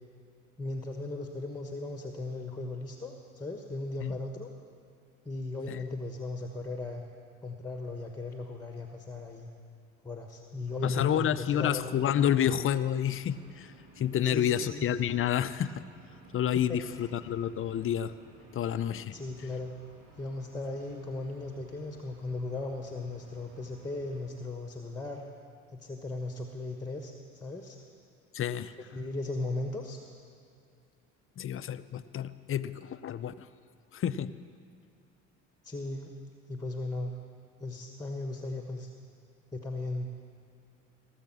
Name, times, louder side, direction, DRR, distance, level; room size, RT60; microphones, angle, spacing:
voice 1, 0.6-4.5 5.2-7.0 7.4-9.5 10.0-11.8 14.2-14.8 16.7-17.0 19.1-19.7 20.2-25.2 25.7-27.8 28.7-30.0 35.6-36.1 36.5-37.1 37.6-38.9 39.5-40.2, left 2 dB, 10° left, 3 dB, 1.3 m, -37 dB
sound 1, 10.7-24.2, right 2 dB, 60° right, 3.8 m, -56 dB
voice 2, 10.8-15.8 16.3-18.1 18.5-19.2 28.3-28.7 31.4-33.5 33.9-34.3, left 10 dB, 35° left, 14 dB, 0.5 m, -29 dB
18.0 x 7.3 x 6.1 m, 2.3 s
hypercardioid pair, 60°, 38 cm